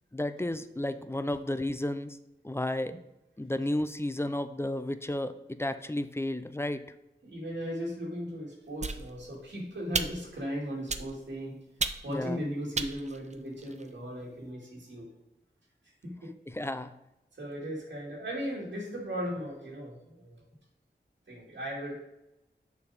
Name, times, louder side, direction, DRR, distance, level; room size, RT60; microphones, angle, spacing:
voice 1, 0.1-2.2 2.4-2.9 3.4-6.8 12.1-12.4 16.5-16.9, left 1 dB, 15° left, 11 dB, 0.5 m, -32 dB
voice 2, 7.2-11.6 12.0-15.1 16.0-16.3 17.4-20.5 21.3-22.2, equal, 80° right, -4 dB, 2.4 m, -37 dB
sound 1, 8.8-9.4 9.9-10.4 10.9-11.3 11.8-12.2 12.7-13.9, right 4 dB, 40° right, 0.5 m, -34 dB
7.1 x 4.3 x 4.9 m, 0.91 s
cardioid pair, 45°, 19 cm